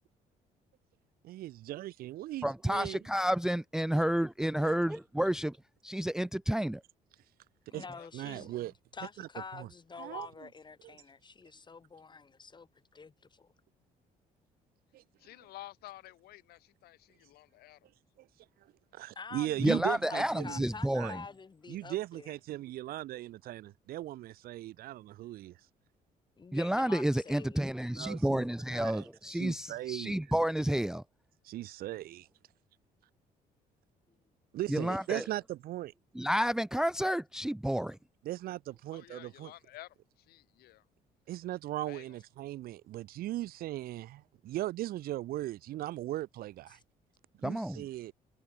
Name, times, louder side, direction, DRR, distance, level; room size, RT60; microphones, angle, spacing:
voice 1, 1.2-3.0 3.9-4.0 4.6-4.8 7.7-7.8 8.1-8.7 9.2-9.3 9.5-9.7 10.0-10.3 14.9-15.0 18.2-18.3 19.0-20.6 21.0-21.1 21.7-25.6 28.0-28.5 28.7-30.2 31.4-32.3 34.5-35.9 38.2-39.5 41.3-46.8 47.4-48.1, right 15 dB, 70° right, 0.6 m, -38 dB
voice 2, 2.4-5.6 5.8-6.8 19.6-21.2 26.5-31.0 34.7-35.2 36.1-38.0 47.4-47.9, right 1 dB, 5° right, 0.6 m, -30 dB
voice 3, 7.7-13.5 19.1-22.4 26.4-27.6 46.7-46.8, left 4 dB, 30° left, 3.3 m, -47 dB
voice 4, 15.2-17.8 38.9-39.9 40.3-40.8 41.9-42.0, left 16 dB, 80° left, 1.2 m, -51 dB
cardioid pair, 110°, 16 cm